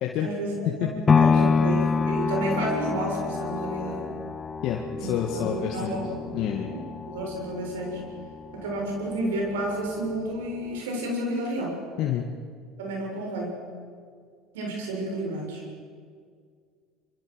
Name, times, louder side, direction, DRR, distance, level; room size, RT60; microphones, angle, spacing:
voice 1, 0.2-4.1 5.0-6.4 6.6-8.0 8.5-11.8 12.8-13.6 14.5-15.6, right 1 dB, 85° right, 0 dB, 7.4 m, -31 dB
sound 1, 1.1-9.2 9.7-9.8, left 5 dB, 30° left, 0.8 m, -27 dB
voice 2, 4.6-6.0 6.3-6.7 12.0-12.3, left 9 dB, 60° left, 1 dB, 2.1 m, -28 dB
25.0 x 24.5 x 6.6 m, 2.1 s
hypercardioid pair, 80°, 0 cm